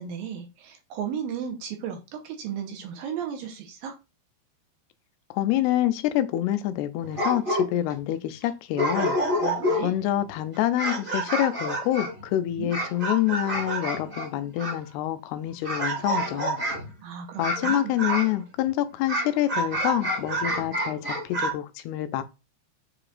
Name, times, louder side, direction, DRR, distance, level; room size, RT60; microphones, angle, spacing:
voice 1, 0.0-3.9 9.4-9.9 12.6-12.7 17.0-17.9, right 8 dB, 75° right, 2.6 m, -35 dB
voice 2, 5.3-9.2 9.8-16.6 17.4-22.2, left 13 dB, 85° left, 2.7 m, -27 dB
sound 1, 7.0-7.9 8.4-8.5 8.8-10.0 10.5-14.8 15.6-16.9 17.4-18.4 19.1-21.5, right 1 dB, 40° right, 0.7 m, -28 dB
7.8 x 4.9 x 2.5 m
omnidirectional pair, 4.6 m